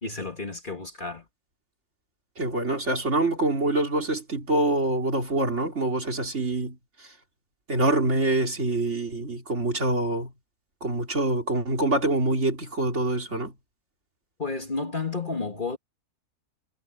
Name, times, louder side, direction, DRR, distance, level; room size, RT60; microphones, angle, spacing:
voice 1, 0.0-1.2 14.4-15.8, left 3 dB, 35° left, 2.2 m, -31 dB
voice 2, 2.4-7.1 7.7-10.3 10.8-13.5, right 2 dB, 50° right, 3.7 m, -25 dB
omnidirectional pair, 1.6 m